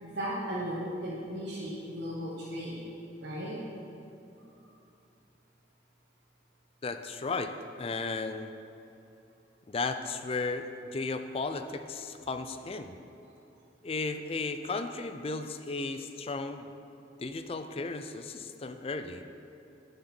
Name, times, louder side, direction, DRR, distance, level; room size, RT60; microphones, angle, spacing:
voice 1, 0.0-2.8 3.2-3.6, equal, 80° right, -8 dB, 1.5 m, -36 dB
voice 2, 6.8-7.5 7.8-8.5 9.7-12.9 13.8-16.7 17.2-19.2, left 3 dB, 35° left, 8 dB, 0.4 m, -35 dB
11.5 x 6.7 x 4.4 m, 2.7 s
head